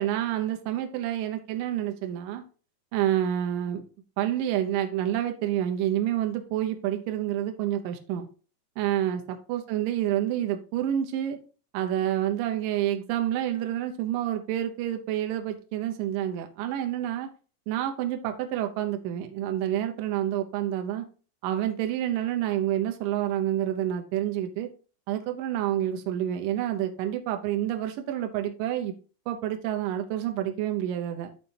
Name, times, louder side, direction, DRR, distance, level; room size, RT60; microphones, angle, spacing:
voice 1, 0.0-2.4 2.9-3.8 4.2-8.3 8.8-11.4 11.7-17.3 17.7-21.1 21.4-24.7 25.1-28.9 29.3-31.3, right 11 dB, 75° right, 2.2 m, -28 dB
11.5 x 4.1 x 2.7 m
omnidirectional pair, 4.5 m